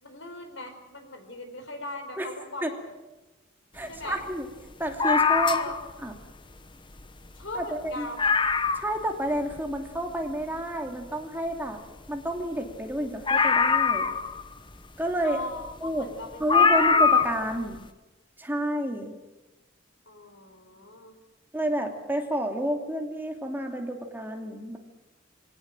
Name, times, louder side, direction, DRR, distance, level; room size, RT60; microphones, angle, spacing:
voice 1, 0.0-2.9 3.9-4.2 5.5-5.8 7.4-8.2 15.2-17.6 20.1-21.2, left 2 dB, 80° left, 6 dB, 4.4 m, -40 dB
voice 2, 3.7-4.5 4.8-5.6 6.0-6.1 7.5-8.1 8.7-11.8 12.1-14.1 15.0-15.4 15.8-16.1 16.4-17.8 18.4-19.1 21.5-24.8, right 1 dB, 10° right, 3 dB, 2.7 m, -30 dB
sound 1, 5.0-5.9 7.0-7.1 7.4-7.5 7.9-8.0 8.2-9.0 9.5-9.6 13.3-14.5 15.7-15.8 16.5-17.5 17.7-17.8, left 5 dB, 25° left, 1.1 m, -22 dB
24.0 x 17.5 x 9.0 m, 1.1 s
head